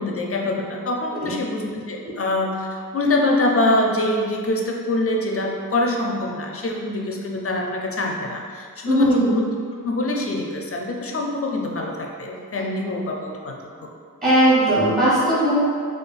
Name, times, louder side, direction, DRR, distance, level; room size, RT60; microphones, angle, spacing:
voice 1, 0.0-9.4 9.8-13.9, left 2 dB, 40° left, 1 dB, 0.4 m, -24 dB
voice 2, 8.8-9.3 14.2-15.6, equal, 25° right, -10 dB, 0.8 m, -18 dB
4.8 x 2.3 x 2.4 m, 2.1 s
wide cardioid pair, 125°, 35 cm